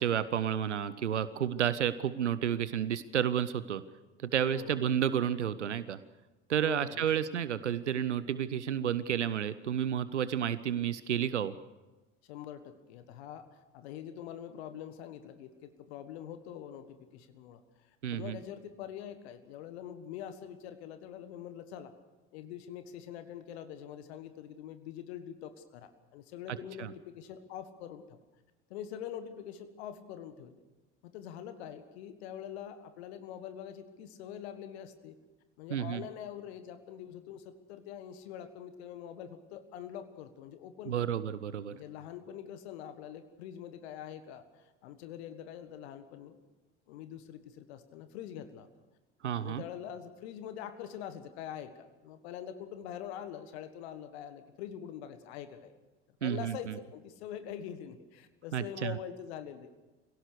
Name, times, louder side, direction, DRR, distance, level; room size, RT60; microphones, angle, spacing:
voice 1, 0.0-3.8 4.2-6.0 6.5-11.5 18.0-18.4 26.5-26.9 35.7-36.0 40.9-41.7 49.2-49.6 56.2-56.7 58.5-58.9, right 9 dB, 85° right, 16 dB, 0.7 m, -31 dB
voice 2, 4.5-4.8 6.6-7.1 12.2-21.9 22.3-28.2 28.7-30.6 31.0-35.2 35.6-41.1 41.7-46.4 46.9-48.7 49.3-55.7 56.2-59.7, left 9 dB, 65° left, 10 dB, 1.6 m, -44 dB
25.5 x 17.0 x 6.7 m, 1.1 s
figure-of-eight pair, 60°, 34 cm